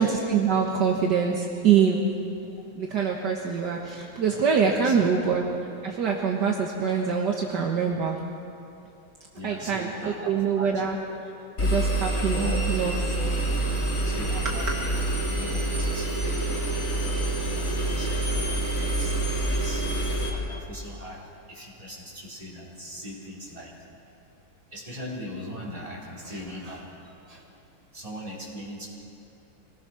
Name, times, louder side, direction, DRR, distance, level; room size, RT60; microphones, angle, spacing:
voice 1, 0.0-2.1 2.8-5.4 5.8-8.2 9.4-11.0 11.6-13.2 13.5-13.9 14.5-14.6, right 6 dB, 65° right, 0 dB, 1.9 m, -25 dB
voice 2, 4.6-5.1 9.3-11.1 13.2-13.4 14.0-14.7 15.3-16.6 17.5-19.1 19.4-20.0 20.3-21.2 21.5-23.7 24.7-27.4 27.9-28.9, equal, 20° right, -4 dB, 4.6 m, -40 dB
Engine, 11.6-20.3, right 2 dB, 40° left, 3.0 m, -27 dB
25.0 x 19.5 x 6.3 m, 2.7 s
omnidirectional pair, 2.1 m